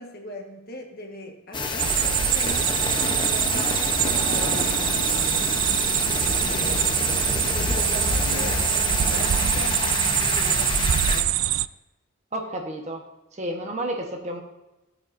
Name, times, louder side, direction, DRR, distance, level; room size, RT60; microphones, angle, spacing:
voice 1, 0.0-5.9 6.4-6.9 7.5-9.9 10.1-11.4, left 1 dB, 45° left, 2 dB, 1.4 m, -39 dB
sound 1, 1.5-11.2, left 3 dB, 20° left, 0.8 m, -27 dB
sound 2, 1.6-9.3, left 1 dB, 60° left, 3.4 m, -47 dB
sound 3, 1.8-11.7, right 13 dB, 70° right, 0.3 m, -24 dB
voice 2, 12.3-13.0 13.3-14.4, right 1 dB, 30° right, 3 dB, 1.2 m, -31 dB
15.0 x 8.7 x 2.6 m, 1.0 s
head